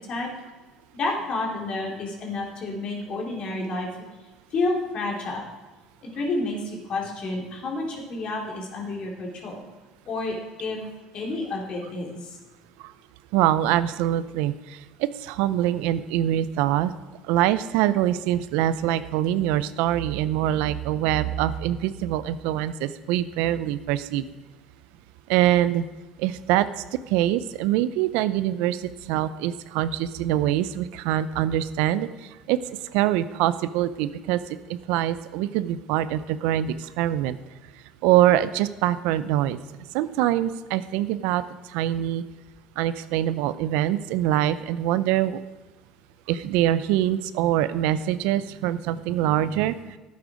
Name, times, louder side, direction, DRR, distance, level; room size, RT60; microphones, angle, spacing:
voice 1, 0.9-3.9 4.5-5.5 6.0-9.6 10.1-10.8 11.1-12.4, left 2 dB, 50° left, -1 dB, 3.2 m, -30 dB
voice 2, 13.3-16.9 17.3-24.2 25.3-25.9 26.2-26.7 27.1-34.4 34.7-37.4 38.0-39.6 39.9-41.4 41.7-42.2 42.8-45.4 46.3-50.0, right 12 dB, 75° right, 15 dB, 0.5 m, -24 dB
11.5 x 8.5 x 4.9 m, 1.2 s
supercardioid pair, 80°, 2 cm